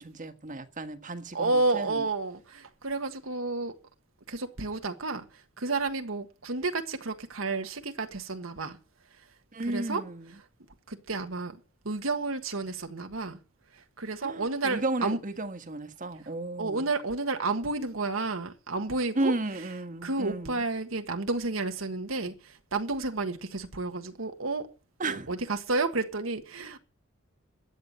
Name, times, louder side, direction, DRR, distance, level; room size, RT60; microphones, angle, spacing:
voice 1, 0.0-2.1 9.5-10.4 14.2-16.9 19.1-20.7 25.0-25.3, right 2 dB, 40° right, 1.5 m, -34 dB
voice 2, 1.3-3.7 4.3-5.2 5.6-8.8 9.7-10.0 10.9-11.6 11.8-13.4 14.0-15.2 16.6-19.3 20.0-24.7 25.0-26.8, right 3 dB, 80° right, 1.5 m, -31 dB
13.5 x 9.0 x 9.4 m
head